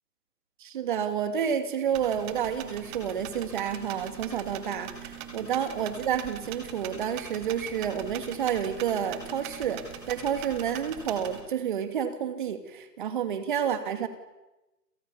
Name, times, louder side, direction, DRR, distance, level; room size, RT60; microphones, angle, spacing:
voice 1, 0.6-14.1, right 8 dB, 30° right, 9 dB, 2.6 m, -30 dB
sound 1, 1.9-11.4, right 8 dB, 15° right, 2.3 m, -41 dB
29.0 x 28.0 x 7.2 m, 1.0 s
hypercardioid pair, 160°, 49 cm